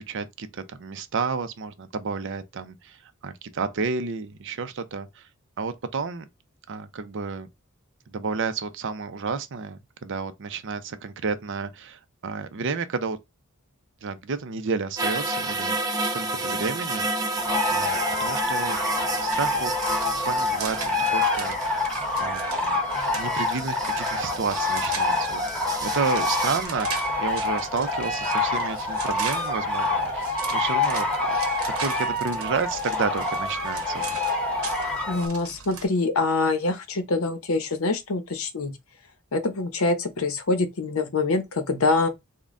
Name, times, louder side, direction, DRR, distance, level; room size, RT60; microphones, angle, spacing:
voice 1, 0.0-5.2 5.6-6.3 6.7-7.5 8.1-13.2 14.0-17.4 17.7-18.8 19.2-19.7 20.2-21.9 22.2-22.8 23.1-25.4 25.8-31.4 31.6-34.2, right 5 dB, 60° right, 0.6 m, -31 dB
sound 1, 15.0-22.1 23.0-26.7, right 2 dB, 20° right, 0.6 m, -31 dB
sound 2, 17.4-35.3, left 2 dB, 5° left, 1.0 m, -27 dB
sound 3, 19.3-35.9, right 5 dB, 80° right, 1.0 m, -40 dB
voice 2, 35.1-38.7 39.3-42.1, left 3 dB, 85° left, 0.8 m, -25 dB
3.7 x 2.2 x 3.6 m
head